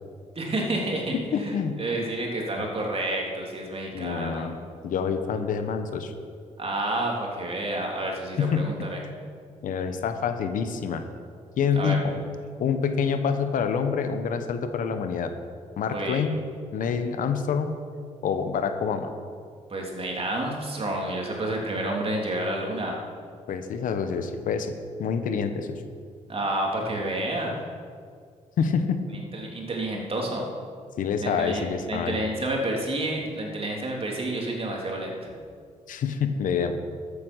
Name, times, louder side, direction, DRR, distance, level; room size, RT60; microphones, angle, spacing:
voice 1, 0.3-4.5 6.6-9.0 11.7-12.0 15.9-16.2 19.7-23.0 26.3-27.5 29.3-30.4 31.2-35.3, right 1 dB, 45° right, -1 dB, 3.2 m, -29 dB
voice 2, 1.1-1.8 2.6-2.7 3.9-4.6 4.8-6.1 8.4-8.7 9.6-11.0 11.6-12.1 12.6-15.3 15.8-16.4 16.7-17.8 18.2-19.1 23.5-24.7 25.0-25.8 28.6-29.0 31.0-32.2 35.9-36.7, left 6 dB, 75° left, 8 dB, 1.1 m, -27 dB
13.5 x 8.5 x 6.2 m, 2.2 s
cardioid pair, 60°, 14 cm